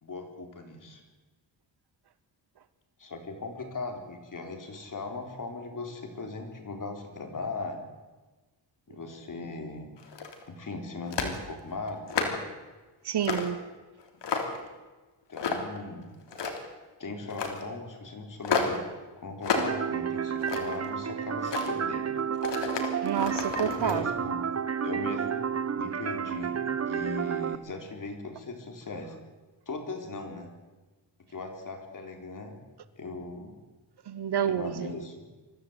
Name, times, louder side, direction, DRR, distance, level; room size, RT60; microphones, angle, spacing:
voice 1, 0.0-1.0 3.0-7.9 8.9-9.9 10.5-12.4 15.3-16.1 17.0-18.9 19.2-22.1 23.5-24.5 24.8-25.5 25.7-29.2 29.7-30.5 31.3-32.6 33.0-33.5 34.4-35.2, left 3 dB, 45° left, 4.1 m, -38 dB
sound 1, 10.0-10.5 11.1-11.4 11.9-12.5 13.2-13.5 14.0-14.7 15.4-15.8 16.2-16.8 17.3-17.6 18.4-18.8 19.4-19.8 20.2-20.9 21.4-21.7 22.3-24.0, left 5 dB, 70° left, 3.4 m, -31 dB
voice 2, 13.0-13.6 23.0-24.1 34.1-34.9, right 9 dB, 60° right, 1.2 m, -29 dB
sound 2, 19.6-27.6, right 7 dB, 35° right, 1.1 m, -31 dB
23.5 x 14.5 x 8.2 m
cardioid pair, 110°, 44 cm